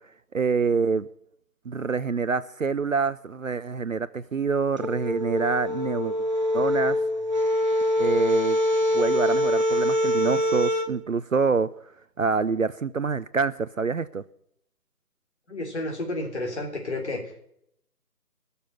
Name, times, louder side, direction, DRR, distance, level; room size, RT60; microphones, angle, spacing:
voice 1, 0.3-1.1 1.7-6.2 6.5-7.0 8.0-8.6 8.9-11.7 12.2-14.2, right 5 dB, 55° right, 16 dB, 0.5 m, -26 dB
sound 1, 4.8-10.9, left 1 dB, 30° right, 0.9 m, -24 dB
voice 2, 15.5-17.2, left 2 dB, 45° left, 2 dB, 3.1 m, -31 dB
14.0 x 7.0 x 9.7 m, 0.73 s
figure-of-eight pair, 165°, 48 cm